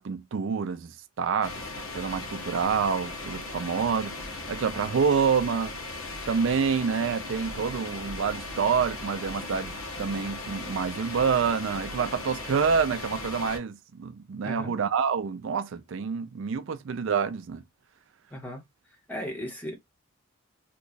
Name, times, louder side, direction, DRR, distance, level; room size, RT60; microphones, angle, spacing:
voice 1, 0.0-1.6 1.9-5.8 6.3-17.6, right 6 dB, 60° right, 0.4 m, -27 dB
sound 1, 1.4-13.6, left 2 dB, 80° left, 0.9 m, -38 dB
voice 2, 18.3-18.6 19.1-19.7, equal, 5° left, 0.9 m, -36 dB
3.0 x 2.3 x 3.8 m
head